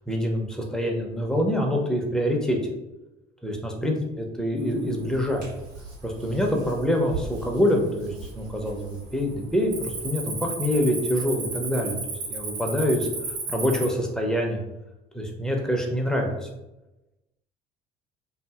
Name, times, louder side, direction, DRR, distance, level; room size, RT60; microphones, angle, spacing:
voice 1, 0.1-2.6 3.4-5.5 6.0-13.1 13.5-14.6 15.1-16.5, equal, 5° left, 1 dB, 0.6 m, -25 dB
Cricket, 4.9-5.3 5.8-6.2 6.8-6.9 7.5-8.1 8.4-8.7 9.0-13.9, right 3 dB, 70° right, 0.9 m, -33 dB
Hands, 5.1-10.1, right 4 dB, 90° right, 1.3 m, -41 dB
2.7 x 2.6 x 2.3 m, 0.98 s
hypercardioid pair, 60°, 21 cm